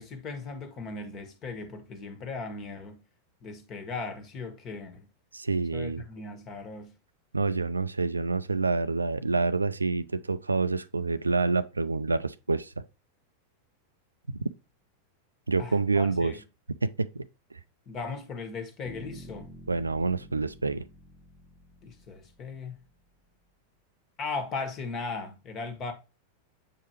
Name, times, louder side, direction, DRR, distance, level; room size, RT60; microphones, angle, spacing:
voice 1, 0.0-3.0 3.4-5.1 5.7-6.9 15.6-16.4 17.9-19.5 21.8-22.8 24.2-25.9, left 4 dB, 30° left, 1.4 m, -37 dB
voice 2, 5.3-6.0 7.3-12.8 14.3-14.5 15.5-16.3 16.8-17.3 17.5-17.6 19.7-20.9, right 3 dB, 80° right, 0.4 m, -27 dB
sound 1, 18.9-22.9, equal, 5° left, 1.3 m, -49 dB
7.3 x 4.9 x 2.9 m
figure-of-eight pair, 90°, 0 cm